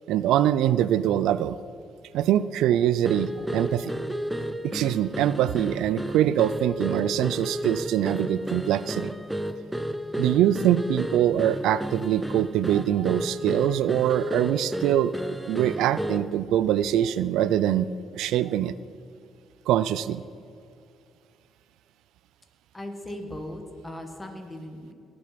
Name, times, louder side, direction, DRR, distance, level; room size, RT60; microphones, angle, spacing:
voice 1, 0.1-1.5 2.1-3.9 4.6-9.1 10.2-15.1 15.5-18.7 19.7-20.2, right 11 dB, 90° right, 16 dB, 0.3 m, -23 dB
sound 1, 3.0-16.4, right 1 dB, 5° right, 0.7 m, -32 dB
voice 2, 22.7-24.9, left 1 dB, 15° left, 4 dB, 1.8 m, -38 dB
18.5 x 6.9 x 5.1 m, 2.4 s
cardioid pair, 90°, 0 cm